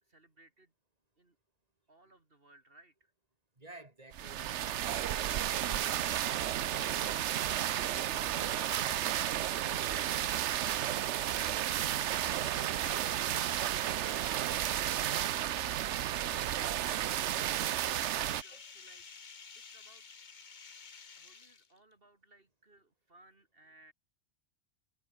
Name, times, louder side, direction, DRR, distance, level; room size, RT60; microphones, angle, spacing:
voice 1, 0.0-0.7 1.2-1.4 1.9-3.1 17.4-19.1 19.5-20.1 21.2-23.9, right 2 dB, 55° right, 3.2 m, -61 dB
voice 2, 3.6-9.4 17.6-17.9, right 2 dB, 35° right, 3.9 m, -53 dB
sound 1, 4.1-18.4, right 11 dB, 90° right, 1.0 m, -32 dB
sound 2, 9.1-16.0 17.5-21.9, left 5 dB, 45° left, 1.2 m, -55 dB
omnidirectional pair, 1.1 m